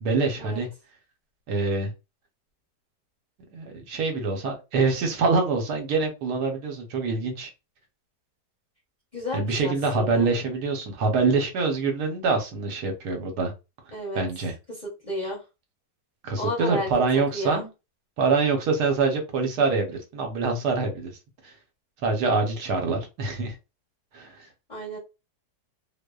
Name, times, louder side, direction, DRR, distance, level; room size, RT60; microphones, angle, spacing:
voice 1, 0.0-0.7 1.5-1.9 3.5-7.5 9.3-13.5 14.1-14.5 16.2-17.7 18.2-21.1 21.4-21.5 22.0-23.6 24.1-24.5, right 4 dB, 80° right, 3 dB, 1.2 m, -25 dB
voice 2, 9.1-10.3 13.9-14.2 14.8-15.4 16.4-17.6 24.7-25.0, left 1 dB, 35° left, -5 dB, 0.9 m, -32 dB
2.7 x 2.1 x 2.2 m, 0.27 s
omnidirectional pair, 1.7 m